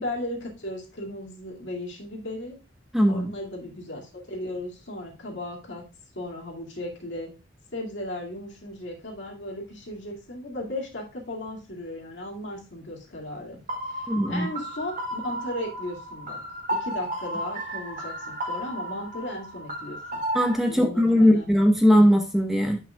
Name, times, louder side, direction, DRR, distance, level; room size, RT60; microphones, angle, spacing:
voice 1, 0.0-2.6 3.1-5.8 6.1-7.3 7.7-13.6 13.9-16.4 16.7-20.2 20.7-21.5, left 1 dB, 70° left, -1 dB, 2.2 m, -36 dB
voice 2, 2.9-3.3 14.1-14.5 20.3-22.8, equal, ahead, 2 dB, 1.0 m, -19 dB
sound 1, 13.7-20.5, right 1 dB, 45° right, 2.0 m, -33 dB
9.1 x 5.5 x 2.3 m, 0.30 s
head